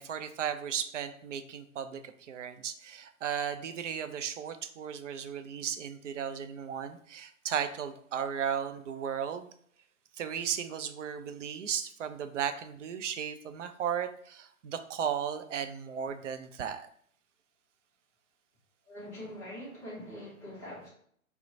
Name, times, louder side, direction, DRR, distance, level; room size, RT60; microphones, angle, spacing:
voice 1, 0.0-9.5 10.2-16.9, right 8 dB, 60° right, 9 dB, 0.5 m, -35 dB
voice 2, 18.9-20.9, equal, 5° left, -7 dB, 0.6 m, -43 dB
4.2 x 2.1 x 2.6 m, 0.63 s
figure-of-eight pair, 125°, 42 cm